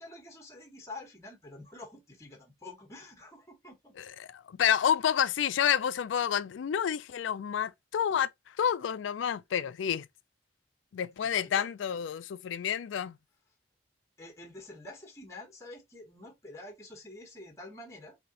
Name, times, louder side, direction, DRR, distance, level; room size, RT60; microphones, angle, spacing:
voice 1, 0.0-3.9 11.3-11.6 14.2-18.2, left 2 dB, 15° left, 1.1 m, -47 dB
voice 2, 4.0-10.1 10.9-13.2, left 9 dB, 90° left, 0.3 m, -29 dB
4.1 x 2.8 x 2.7 m
head